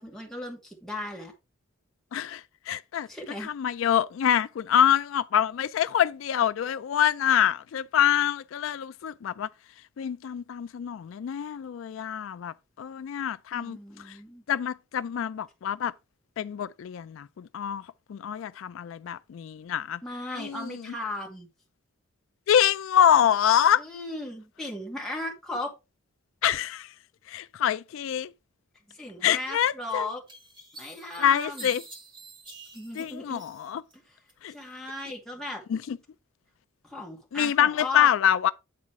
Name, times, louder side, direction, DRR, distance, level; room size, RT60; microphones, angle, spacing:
voice 1, 0.0-1.3 3.1-3.5 13.5-14.4 20.0-21.5 23.8-25.7 28.9-30.2 30.8-31.7 32.7-33.4 34.5-35.6 36.8-38.1, left 2 dB, ahead, 2.3 m, -36 dB
voice 2, 2.1-3.1 3.4-9.5 10.0-14.2 14.5-15.9 16.4-20.0 20.4-20.9 22.5-23.8 26.4-26.9 27.3-28.3 29.2-30.1 31.2-31.8 32.9-33.8 34.4-34.5 35.7-36.0 37.3-38.5, left 9 dB, 70° left, 0.3 m, -26 dB
sound 1, 29.6-29.7 30.3-34.0 34.3-35.0, right 3 dB, 25° right, 2.3 m, -48 dB
8.9 x 4.1 x 4.7 m
head